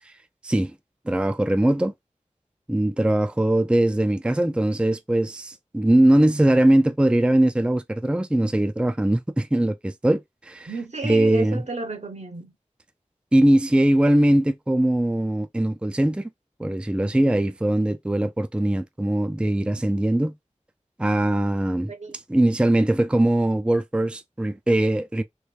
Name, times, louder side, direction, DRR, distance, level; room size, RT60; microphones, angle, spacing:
voice 1, 0.4-0.8 1.1-1.9 2.7-10.7 11.0-11.6 13.3-16.3 16.6-20.3 21.0-21.9 22.3-25.2, right 1 dB, 10° right, 0.4 m, -21 dB
voice 2, 10.7-12.5 21.9-22.2, right 2 dB, 70° right, 0.8 m, -32 dB
3.0 x 2.6 x 3.2 m
wide cardioid pair, 45°, 12 cm